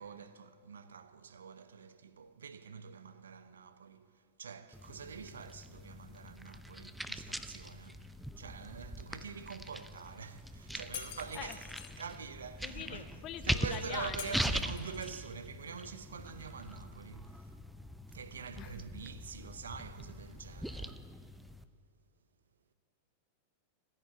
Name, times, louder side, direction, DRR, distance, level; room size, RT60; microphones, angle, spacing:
voice 1, 0.0-17.6 18.1-21.1, right 6 dB, 70° right, 0.7 m, -46 dB
sound 1, 4.7-21.6, equal, ahead, 0.6 m, -42 dB
Shatter, 10.9-11.9 14.2-15.2, left 10 dB, 55° left, 1.3 m, -46 dB
voice 2, 12.6-14.5 18.6-18.7, left 11 dB, 35° left, 0.8 m, -44 dB
14.5 x 10.5 x 8.5 m
figure-of-eight pair, 90°, 0 cm